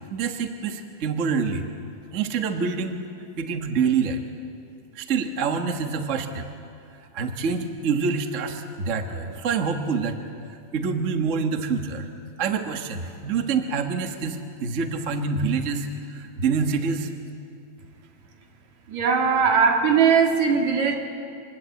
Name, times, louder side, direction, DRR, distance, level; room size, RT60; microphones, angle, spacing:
voice 1, 0.1-1.6 2.1-3.0 3.4-4.2 4.9-6.5 7.1-10.2 10.7-12.1 12.4-17.1, right 5 dB, 40° right, 5 dB, 1.1 m, -26 dB
voice 2, 18.9-21.0, right 6 dB, 70° right, 2 dB, 3.4 m, -19 dB
26.0 x 21.0 x 8.3 m, 2.5 s
omnidirectional pair, 3.3 m